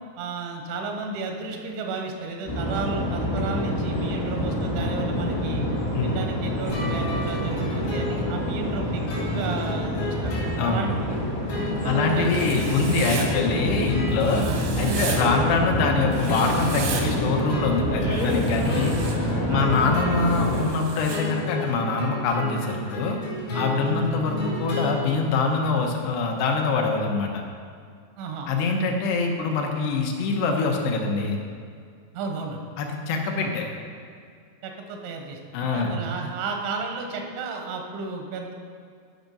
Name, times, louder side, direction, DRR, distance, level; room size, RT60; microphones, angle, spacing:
voice 1, 0.2-5.6 6.0-10.4 10.6-11.2 11.8-12.6 13.1-13.3 14.4-14.6 15.2-15.5 19.5-19.7 23.8-24.1 28.2-28.5 32.1-32.6 33.4-33.5 34.6-38.5, right 4 dB, 90° right, 3 dB, 3.4 m, -33 dB
sound 1, 2.4-20.6, equal, 25° left, 2.3 m, -27 dB
sound 2, 6.7-25.9, equal, 60° left, 3.9 m, -32 dB
voice 2, 10.6-10.9 11.8-14.4 14.8-18.9 19.5-23.2 23.5-27.4 28.5-31.4 32.8-33.7 35.5-36.0, left 4 dB, 75° left, 1 dB, 2.9 m, -24 dB
Writing, 12.2-13.3 14.2-15.2 16.1-17.0 18.1-19.1 20.2-21.2, right 5 dB, 75° right, 1.9 m, -35 dB
11.5 x 5.9 x 5.3 m, 2.2 s
omnidirectional pair, 5.1 m